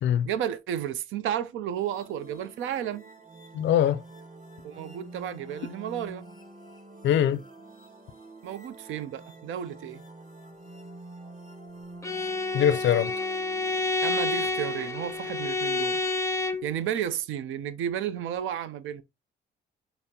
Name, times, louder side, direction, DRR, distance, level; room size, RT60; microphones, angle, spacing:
voice 1, 0.2-3.0 4.6-6.2 8.4-10.0 14.0-16.0 16.6-19.0, right 10 dB, 80° right, 0.5 m, -32 dB
sound 1, 1.7-15.5, right 2 dB, 40° right, 2.1 m, -47 dB
voice 2, 3.5-4.0 7.0-7.4 12.5-13.1, left 10 dB, 70° left, 0.4 m, -22 dB
Bowed string instrument, 12.0-16.7, left 3 dB, 15° left, 0.5 m, -29 dB
5.6 x 2.0 x 2.7 m
cardioid pair, 90°, 20 cm